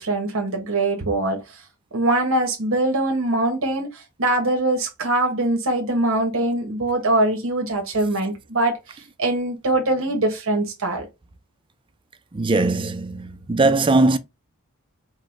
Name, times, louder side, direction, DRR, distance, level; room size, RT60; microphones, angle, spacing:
voice 1, 0.0-1.6 1.9-11.1, right 2 dB, 65° right, 1.1 m, -23 dB
voice 2, 12.3-14.2, right 2 dB, 25° right, 0.4 m, -20 dB
4.8 x 2.1 x 4.4 m
head